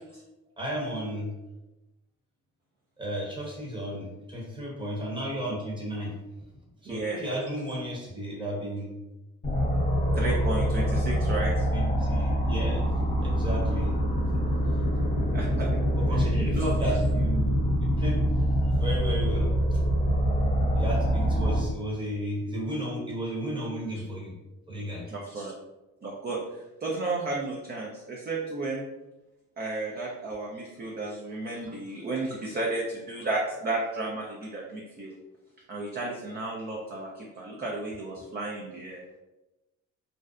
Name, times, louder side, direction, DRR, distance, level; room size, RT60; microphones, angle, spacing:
voice 1, 0.6-1.3 3.0-6.1 6.8-9.0 11.7-12.8 13.2-13.9 16.0-18.2 18.8-19.8 20.7-24.3 24.7-25.0, right 1 dB, 15° right, -4 dB, 0.9 m, -33 dB
voice 2, 6.9-7.3 10.1-11.7 15.3-15.8 16.1-16.3 16.6-16.7 25.1-25.5 26.0-28.8 29.6-35.1 35.7-39.2, right 2 dB, 35° right, -2 dB, 0.4 m, -33 dB
sound 1, 9.4-21.6, equal, 25° left, 0.7 m, -25 dB
2.6 x 2.0 x 2.3 m, 1.0 s
cardioid pair, 90°, 30 cm